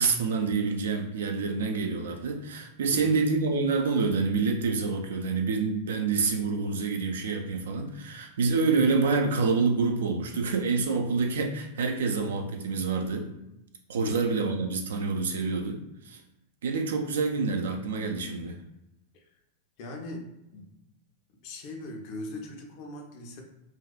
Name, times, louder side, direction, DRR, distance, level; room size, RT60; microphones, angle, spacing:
voice 1, 0.0-13.3 13.9-16.2 16.6-18.6, right 4 dB, 60° right, 4 dB, 0.3 m, -27 dB
voice 2, 2.9-3.2 14.0-14.2 19.8-20.7 21.4-23.4, left 2 dB, 45° left, 2 dB, 0.5 m, -39 dB
2.6 x 2.2 x 2.2 m, 0.87 s
figure-of-eight pair, 90°, 0 cm